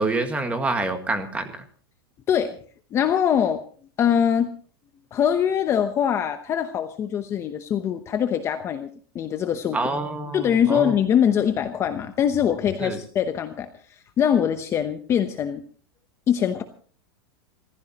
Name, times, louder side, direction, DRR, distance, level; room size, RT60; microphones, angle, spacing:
voice 1, 0.0-1.5 9.7-10.9 12.8-13.0, right 3 dB, 10° right, 7 dB, 1.8 m, -26 dB
voice 2, 2.9-3.6 4.0-4.5 5.1-9.8 10.3-15.6 16.3-16.6, left 8 dB, 20° left, 8 dB, 0.9 m, -23 dB
27.0 x 14.5 x 3.0 m, 0.43 s
supercardioid pair, 160°, 13 cm